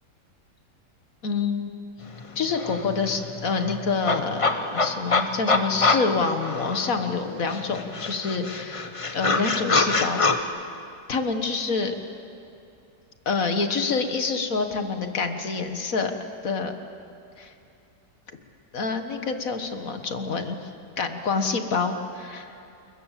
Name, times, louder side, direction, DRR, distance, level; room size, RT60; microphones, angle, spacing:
voice 1, 1.2-1.7 2.4-8.8 9.1-10.2 11.1-11.9 13.3-16.1 16.4-16.7 17.4-17.5 18.7-20.7 21.0-22.5, left 4 dB, 50° left, 7 dB, 1.8 m, -27 dB
sound 1, 2.2-2.3 2.5-7.2 7.5-10.4, left 3 dB, 25° left, 0.7 m, -25 dB
29.5 x 21.0 x 7.5 m, 2.6 s
omnidirectional pair, 1.9 m